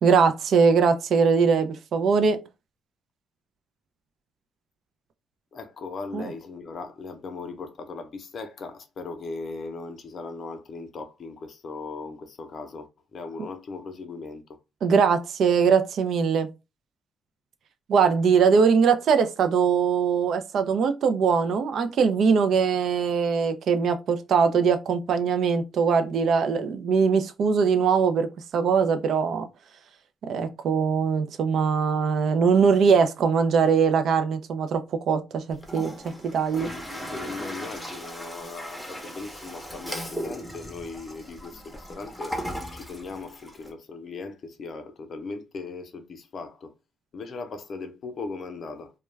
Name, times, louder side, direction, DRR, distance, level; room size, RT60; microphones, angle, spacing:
voice 1, 0.0-2.4 6.1-6.2 14.8-16.5 17.9-28.3 28.5-29.4 30.2-34.8 35.1-35.9 36.3-36.7, right 6 dB, 65° right, 0.4 m, -21 dB
voice 2, 5.5-14.4 36.6-42.4 42.7-46.7 47.1-48.9, left 4 dB, 55° left, 0.6 m, -38 dB
Toilet flush, 35.5-43.7, equal, ahead, 0.7 m, -37 dB
2.3 x 2.1 x 3.1 m
cardioid pair, 90°, 0 cm